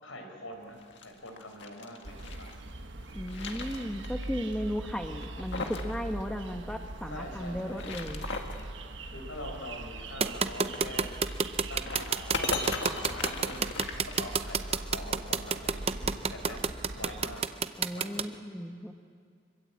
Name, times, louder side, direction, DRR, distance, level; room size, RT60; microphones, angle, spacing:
voice 1, 0.0-2.5 7.1-7.9 9.1-11.1 11.7-12.6 12.9-16.6 16.9-17.4 17.9-18.3, left 1 dB, 80° left, 3 dB, 4.9 m, -44 dB
sound 1, 0.7-2.6 3.0-4.3 4.5-4.6 5.1-5.9 6.2-6.3 7.6-8.6 10.6-14.6, left 3 dB, 60° left, 2.0 m, -38 dB
sound 2, 2.0-17.4, right 2 dB, 60° right, 1.3 m, -42 dB
voice 2, 3.1-8.3 17.8-18.9, equal, 5° left, 4 dB, 1.1 m, -35 dB
sound 3, 10.2-18.2, right 5 dB, 30° right, 0.6 m, -28 dB
25.0 x 22.5 x 8.5 m, 2.1 s
head